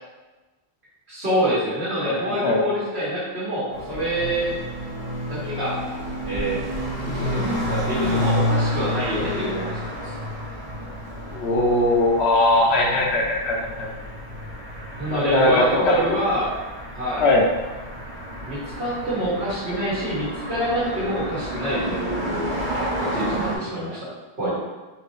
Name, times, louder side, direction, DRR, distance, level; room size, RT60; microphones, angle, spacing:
voice 1, 1.1-4.5 5.3-5.8 6.2-6.6 7.0-10.1 15.0-16.5 16.9-17.3 18.5-22.5 23.0-24.1 24.4-24.5, equal, 80° right, -9 dB, 1.9 m, -26 dB
voice 2, 2.0-2.6 11.3-13.9 15.1-16.4 17.2-17.4, left 2 dB, 85° left, -1 dB, 1.0 m, -20 dB
sound 1, 3.7-23.6, equal, 50° right, 1.0 m, -30 dB
4.2 x 2.9 x 3.1 m, 1.2 s
omnidirectional pair, 1.1 m